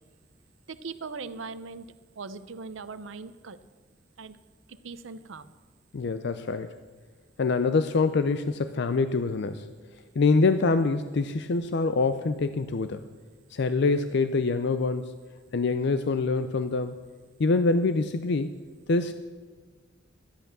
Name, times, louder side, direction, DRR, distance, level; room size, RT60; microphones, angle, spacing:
voice 1, 0.7-1.9 2.2-3.6 4.2-4.4 4.7-5.5, right 4 dB, 85° right, 13 dB, 0.7 m, -40 dB
voice 2, 5.9-6.7 7.4-9.7 10.2-13.1 13.5-15.2 15.5-17.0 17.4-19.1, left 3 dB, 60° left, 10 dB, 0.5 m, -25 dB
13.0 x 8.8 x 6.7 m, 1.4 s
head